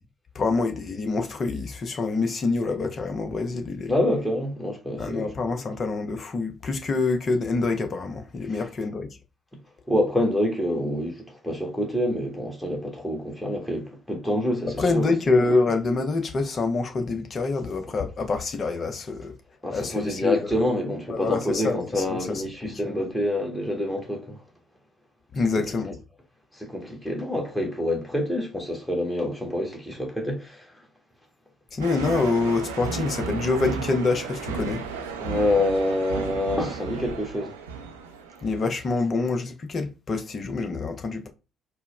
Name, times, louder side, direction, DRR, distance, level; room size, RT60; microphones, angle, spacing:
voice 1, 0.3-3.9 5.0-9.1 14.8-19.3 19.7-20.5 21.1-23.0 25.3-25.9 31.7-34.8 38.4-41.3, left 3 dB, 40° left, 0.8 m, -26 dB
voice 2, 3.9-5.3 9.9-15.1 19.6-24.4 25.5-25.6 26.5-30.7 35.2-37.6, left 1 dB, 10° left, 1.5 m, -27 dB
sound 1, 31.8-38.9, right 5 dB, 75° right, 0.5 m, -34 dB
4.4 x 2.2 x 3.2 m
figure-of-eight pair, 50°, 0 cm